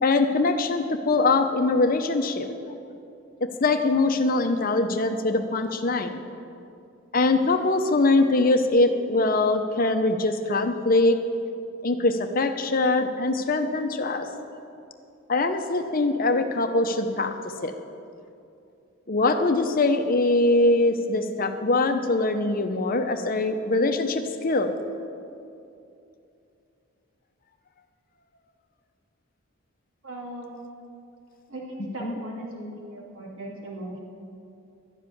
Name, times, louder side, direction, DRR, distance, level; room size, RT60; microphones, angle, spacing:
voice 1, 0.0-2.5 3.4-6.2 7.1-11.2 11.8-14.3 15.3-17.3 17.6-17.7 19.1-24.7 32.0-32.1, left 2 dB, 40° left, 6 dB, 0.8 m, -22 dB
voice 2, 30.0-30.6 31.5-34.0, right 1 dB, 75° right, -3 dB, 2.8 m, -38 dB
11.5 x 7.5 x 9.8 m, 2.6 s
head